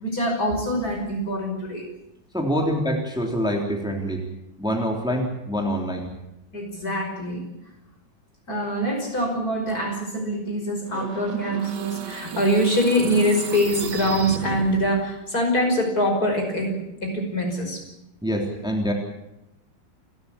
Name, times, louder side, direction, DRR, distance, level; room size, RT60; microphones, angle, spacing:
voice 1, 0.0-1.9 6.5-7.4 8.5-17.8, equal, 55° left, 2 dB, 6.1 m, -24 dB
voice 2, 2.3-4.2 4.6-6.1 18.2-18.9, equal, ahead, 1 dB, 3.3 m, -25 dB
sound 1, 10.9-15.1, right 8 dB, 70° right, 1.6 m, -35 dB
29.5 x 13.0 x 8.6 m, 0.89 s
omnidirectional pair, 2.0 m